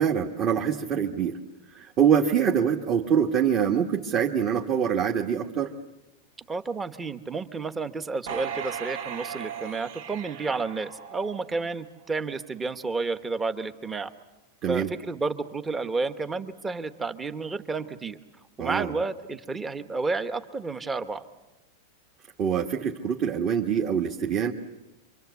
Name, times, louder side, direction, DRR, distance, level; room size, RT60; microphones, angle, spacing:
voice 1, 0.0-1.4 1.7-5.7 14.6-14.9 18.6-18.9 22.4-24.5, right 8 dB, 30° right, 1 dB, 1.6 m, -24 dB
voice 2, 6.5-14.1 14.7-18.2 18.6-21.2, right 3 dB, 10° right, 10 dB, 1.1 m, -31 dB
sound 1, 8.3-11.7 12.2-12.3, right 8 dB, 60° right, 2.6 m, -37 dB
28.0 x 24.5 x 8.3 m, 0.99 s
supercardioid pair, 165°, 0 cm